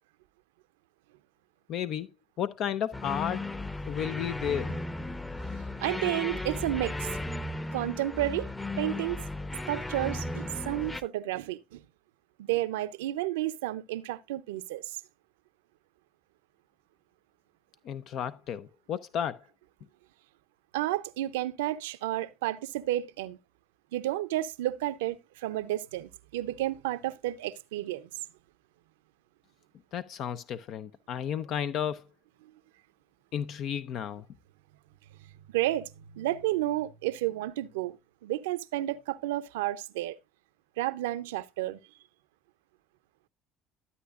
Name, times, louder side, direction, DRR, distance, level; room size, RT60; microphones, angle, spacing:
voice 1, 1.7-2.1 2.4-3.4 3.9-4.8 17.8-19.4 29.9-32.1 33.3-34.3, left 9 dB, 65° left, 0.7 m, -33 dB
sound 1, 2.9-11.0, left 2 dB, 15° left, 0.9 m, -35 dB
voice 2, 5.8-7.2 7.7-8.5 8.8-9.2 9.7-11.8 12.4-15.0 20.7-23.4 23.9-28.1 35.5-38.0 38.2-40.2 40.8-41.8, right 15 dB, 85° right, 0.5 m, -31 dB
12.5 x 8.4 x 2.4 m
hypercardioid pair, 70°, 0 cm